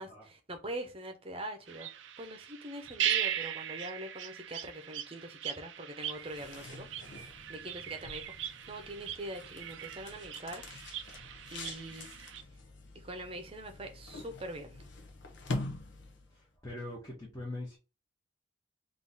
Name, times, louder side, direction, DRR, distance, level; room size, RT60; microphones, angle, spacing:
voice 1, 0.0-6.9 7.5-12.1 12.9-14.8, right 1 dB, 30° right, 0.8 m, -43 dB
sound 1, 1.7-12.4, right 10 dB, 60° right, 0.4 m, -39 dB
sound 2, 6.1-16.4, left 2 dB, 60° left, 0.8 m, -45 dB
voice 2, 16.3-17.8, left 2 dB, 15° left, 1.0 m, -42 dB
3.7 x 2.7 x 4.0 m
head